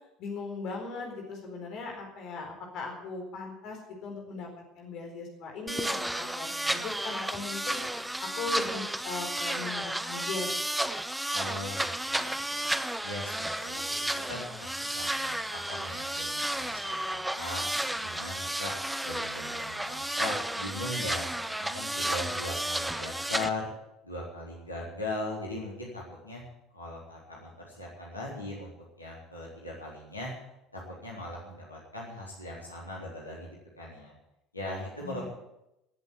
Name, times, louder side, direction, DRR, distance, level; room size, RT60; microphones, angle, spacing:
voice 1, 0.2-4.5 4.8-7.8 8.2-10.5 35.0-35.3, left 4 dB, 50° left, 2 dB, 4.3 m, -38 dB
sound 1, 5.7-23.5, right 1 dB, 5° right, 0.8 m, -32 dB
voice 2, 11.3-12.6 13.0-14.0 14.3-17.6 18.0-18.7 19.0-23.7 24.0-26.4 26.7-28.7 29.0-30.3 30.7-33.5 33.8-34.1 34.5-35.3, left 2 dB, 85° left, -4 dB, 3.9 m, -39 dB
18.0 x 8.1 x 9.1 m, 0.87 s
figure-of-eight pair, 65°, 0 cm